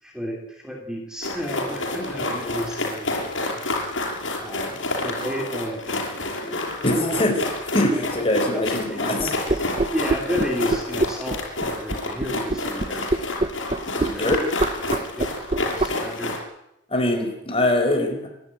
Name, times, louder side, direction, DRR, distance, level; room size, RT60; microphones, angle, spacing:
voice 1, 0.0-3.6 4.4-6.7 7.1-7.3 7.9-8.1 8.5-13.1 13.9-14.3 14.9-15.4 15.7-16.4, equal, 5° right, 1 dB, 2.9 m, -33 dB
sound 1, 1.2-16.4, left 2 dB, 85° left, 6.2 m, -29 dB
voice 2, 6.8-7.5 7.7-9.4 13.8-14.4 16.9-18.3, left 1 dB, 30° left, 3 dB, 5.0 m, -23 dB
sound 2, 9.2-15.9, right 2 dB, 35° right, 0.8 m, -23 dB
27.0 x 12.0 x 9.6 m, 0.85 s
head